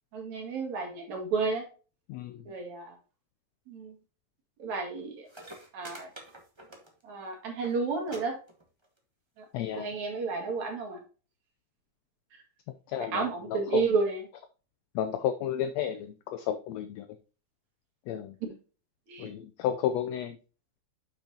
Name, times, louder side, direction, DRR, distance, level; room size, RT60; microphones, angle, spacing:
voice 1, 0.1-1.7 2.5-3.0 3.7-4.0 4.6-5.3 5.7-6.1 7.0-8.4 9.4-9.5 9.8-11.0 12.3-12.4 13.0-14.2 19.1-19.3, right 4 dB, 65° right, 1 dB, 3.3 m, -31 dB
voice 2, 2.1-2.5 9.5-9.9 12.9-13.8 15.0-17.1 18.1-18.4 19.2-20.4, left 10 dB, 75° left, 9 dB, 1.6 m, -32 dB
sound 1, 5.0-5.1 5.3-7.2 7.5-7.7 8.1-8.2 8.5-9.0 9.8-9.9, right 1 dB, 20° right, 0.7 m, -47 dB
8.5 x 6.0 x 2.8 m, 0.35 s
omnidirectional pair, 3.6 m